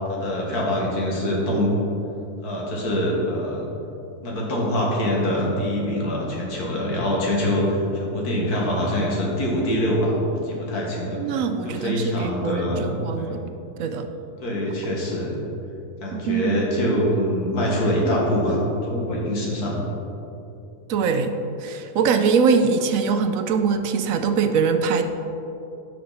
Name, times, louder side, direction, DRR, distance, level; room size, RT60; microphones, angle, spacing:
voice 1, 0.1-1.7 2.4-3.7 4.2-11.4 11.6-13.4 14.4-15.4 16.0-19.8, equal, 90° left, -3 dB, 2.2 m, -24 dB
voice 2, 11.1-13.4 13.8-14.1 16.3-16.6 20.9-21.4 21.6-25.0, right 5 dB, 70° right, 8 dB, 0.9 m, -22 dB
12.5 x 5.8 x 4.1 m, 2.9 s
omnidirectional pair, 1.6 m